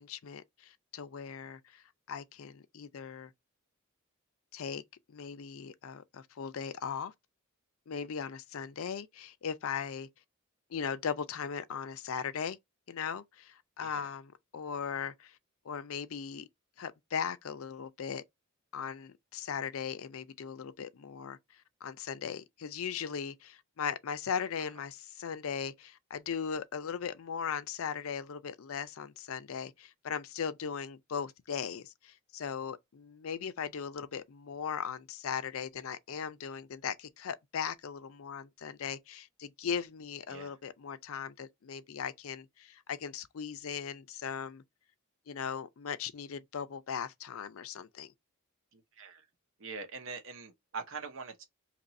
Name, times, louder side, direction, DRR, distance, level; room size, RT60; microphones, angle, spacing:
voice 1, 0.0-3.3 4.5-4.8 5.1-7.1 7.9-10.1 10.7-12.6 12.9-15.4 15.6-16.5 16.8-18.2 18.7-21.4 21.8-44.6 45.3-48.1, left 7 dB, 70° left, 0.5 m, -38 dB
voice 2, 13.8-14.1 40.3-40.5 48.7-49.2 49.6-51.5, right 4 dB, 65° right, 0.9 m, -43 dB
2.9 x 2.5 x 4.1 m
head